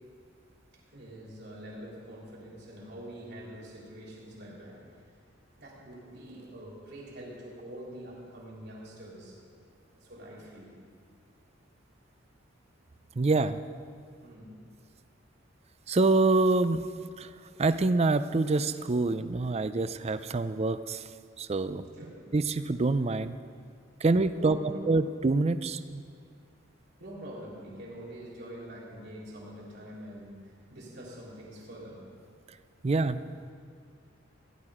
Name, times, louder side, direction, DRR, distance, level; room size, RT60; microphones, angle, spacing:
voice 1, 0.7-4.8 5.6-9.4 9.9-10.7 14.2-14.6 21.9-22.3 24.3-24.8 27.0-32.1, equal, 55° right, -4 dB, 3.6 m, -45 dB
voice 2, 13.2-13.6 15.9-16.8 17.2-17.3 17.6-21.0 21.4-21.9 22.3-23.4 24.0-24.6 24.9-26.0 32.8-33.2, right 3 dB, 30° right, 13 dB, 0.4 m, -26 dB
16.5 x 11.5 x 5.0 m, 2.2 s
head